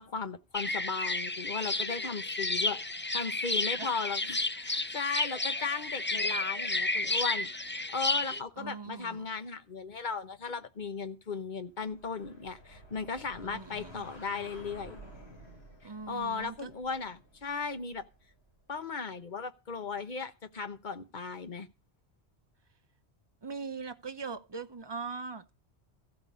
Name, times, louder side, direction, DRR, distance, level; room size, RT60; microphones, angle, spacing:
voice 1, 0.0-7.5 7.9-15.0 16.1-18.0 18.7-21.7, left 5 dB, 45° left, 1.1 m, -36 dB
sound 1, 0.5-8.4, left 2 dB, 15° left, 0.4 m, -32 dB
voice 2, 8.6-9.3 13.4-14.1 15.8-16.7 23.4-25.5, right 4 dB, 25° right, 0.7 m, -41 dB
sound 2, 11.8-18.4, equal, 70° left, 7.9 m, -52 dB
15.0 x 5.3 x 8.5 m
omnidirectional pair, 1.1 m